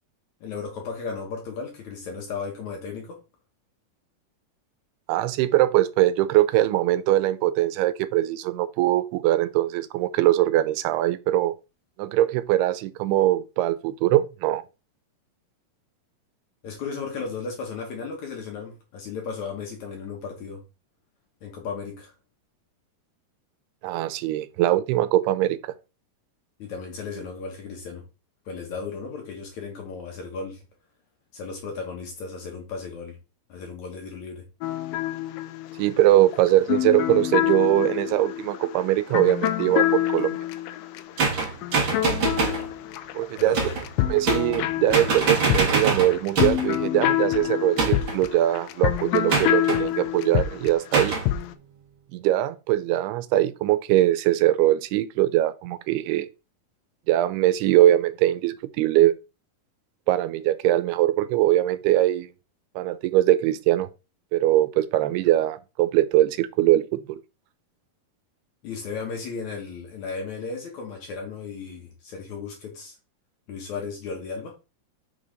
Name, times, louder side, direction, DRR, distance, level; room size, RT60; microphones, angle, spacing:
voice 1, 0.4-3.2 16.6-20.6 21.4-22.1 26.6-28.0 28.5-30.6 31.3-33.2 33.5-34.5 43.4-43.9 68.6-73.0 73.5-74.6, left 5 dB, 60° left, 2.2 m, -35 dB
voice 2, 5.1-11.5 12.0-14.6 23.8-25.7 35.8-40.4 43.2-43.6 44.1-51.2 52.1-56.3 57.1-59.1 60.1-62.3 62.8-63.9 64.3-67.2, right 14 dB, 85° right, 2.6 m, -22 dB
sound 1, 34.6-43.4 43.7-51.5, left 13 dB, 85° left, 2.0 m, -27 dB
sound 2, 41.2-42.7 43.5-43.9 44.3-44.7 44.9-46.7 47.8-48.2 49.3-49.8 50.9-51.3, right 4 dB, 55° right, 1.3 m, -24 dB
6.1 x 3.9 x 5.1 m
omnidirectional pair, 4.5 m